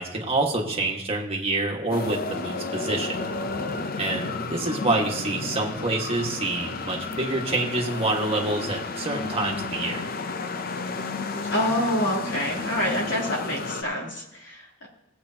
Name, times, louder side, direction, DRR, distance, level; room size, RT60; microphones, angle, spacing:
voice 1, 0.0-3.2 4.0-10.0, right 2 dB, 30° right, -1 dB, 1.6 m, -27 dB
sound 1, 1.9-13.8, left 3 dB, 45° left, 0.7 m, -32 dB
voice 2, 11.5-14.9, left 1 dB, 60° left, -3 dB, 2.8 m, -27 dB
17.0 x 8.0 x 2.9 m, 0.86 s
head